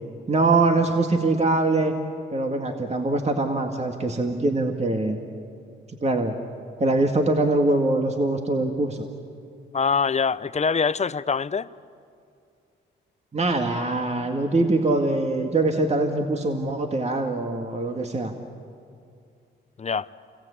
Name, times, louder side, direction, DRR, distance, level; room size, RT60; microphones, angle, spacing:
voice 1, 0.3-1.9 2.3-5.2 6.0-6.4 6.8-9.0 13.3-18.3, right 2 dB, 30° right, 2.2 m, -23 dB
voice 2, 9.7-11.7 19.8-20.1, left 5 dB, 35° left, 0.7 m, -24 dB
29.5 x 22.0 x 8.5 m
cardioid pair, 70°, 21 cm